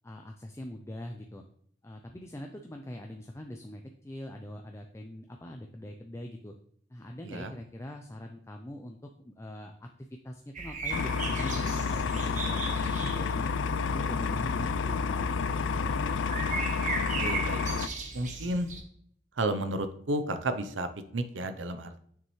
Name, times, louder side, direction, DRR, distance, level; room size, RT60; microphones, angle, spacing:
voice 1, 0.0-1.4 1.8-6.5 6.9-13.5 13.9-15.3 15.6-16.2, left 1 dB, 15° left, 3 dB, 0.5 m, -43 dB
sound 1, 10.5-18.8, right 3 dB, 40° right, 1.2 m, -38 dB
sound 2, 10.9-17.9, left 5 dB, 85° left, 0.4 m, -30 dB
voice 2, 17.2-17.8 18.1-18.7 19.4-22.1, right 1 dB, 80° right, 10 dB, 0.7 m, -32 dB
6.8 x 6.3 x 3.2 m, 0.64 s
head